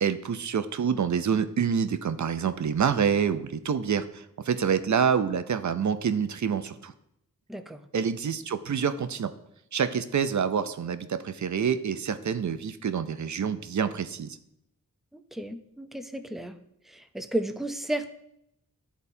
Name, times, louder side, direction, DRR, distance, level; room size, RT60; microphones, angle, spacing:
voice 1, 0.0-6.9 7.9-9.3 9.7-14.4, right 7 dB, 55° right, 11 dB, 0.5 m, -27 dB
voice 2, 7.5-7.8 15.1-16.6 16.9-18.1, right 1 dB, ahead, 7 dB, 0.5 m, -33 dB
12.0 x 4.1 x 2.7 m, 0.79 s
wide cardioid pair, 75°, 35 cm